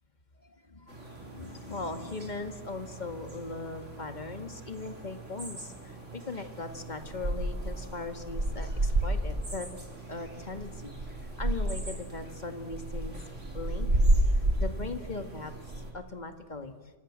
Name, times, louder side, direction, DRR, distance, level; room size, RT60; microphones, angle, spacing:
voice 1, 0.4-9.7 10.1-13.2 13.5-13.9 14.3-16.7, left 3 dB, 35° left, 7 dB, 2.2 m, -39 dB
sound 1, 0.9-15.9, right 1 dB, 85° right, 4.6 m, -32 dB
27.5 x 25.5 x 7.5 m, 1.4 s
omnidirectional pair, 1.2 m